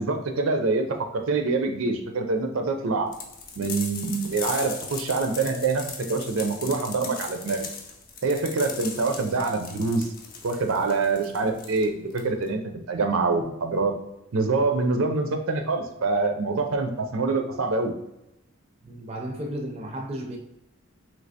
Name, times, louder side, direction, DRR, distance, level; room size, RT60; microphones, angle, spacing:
voice 1, 0.0-3.1 3.6-7.7 8.2-10.1 10.4-12.6 12.9-13.9 14.3-17.9, right 3 dB, 85° right, 5 dB, 0.5 m, -25 dB
sound 1, 3.1-12.5, left 5 dB, 40° left, 0.5 m, -38 dB
voice 2, 18.8-20.4, equal, 30° right, 1 dB, 0.4 m, -33 dB
3.2 x 2.7 x 2.7 m, 0.84 s
head